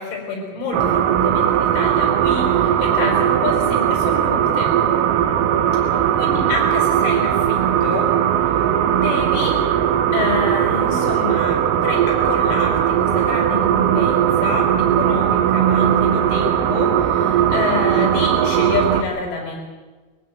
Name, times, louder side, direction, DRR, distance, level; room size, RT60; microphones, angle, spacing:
voice 1, 0.0-4.7 6.2-8.2 8.5-8.6 8.9-9.6 10.1-19.6, left 4 dB, 90° left, -1 dB, 8.0 m, -27 dB
sound 1, 0.7-19.0, right 9 dB, 85° right, 3.9 m, -18 dB
22.0 x 14.5 x 9.2 m, 1.3 s
omnidirectional pair, 5.9 m